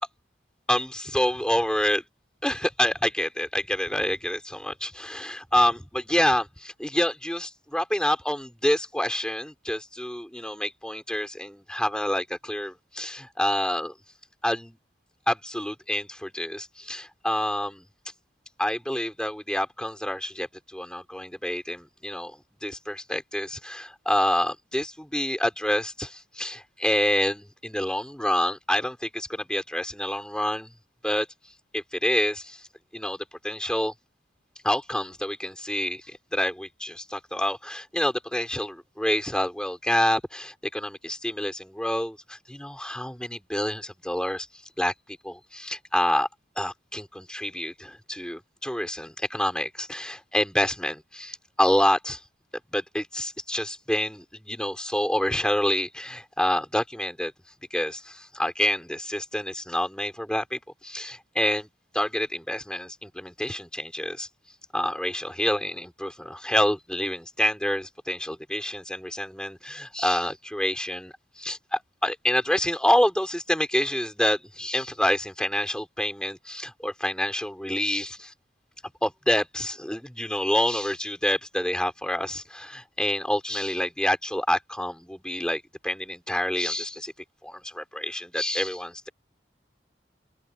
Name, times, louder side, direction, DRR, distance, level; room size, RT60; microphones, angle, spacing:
voice 1, 0.7-2.0 2.4-13.9 14.4-14.8 15.3-17.9 18.6-30.7 31.0-31.3 31.7-32.7 32.9-33.9 34.6-44.5 44.8-46.3 46.6-52.2 52.7-57.3 57.7-61.7 61.9-64.3 64.7-78.3 79.0-87.1 87.4-89.1, left 1 dB, 5° left, 4.7 m, -27 dB
open air
head